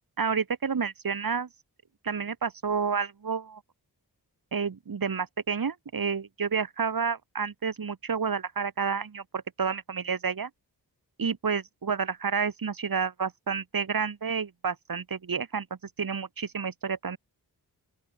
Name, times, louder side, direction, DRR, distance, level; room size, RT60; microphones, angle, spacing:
voice 1, 0.2-1.5 2.0-3.6 4.5-10.5 11.2-15.7 16.0-17.2, right 6 dB, 60° right, 2.0 m, -30 dB
open air
wide cardioid pair, 100°, 39 cm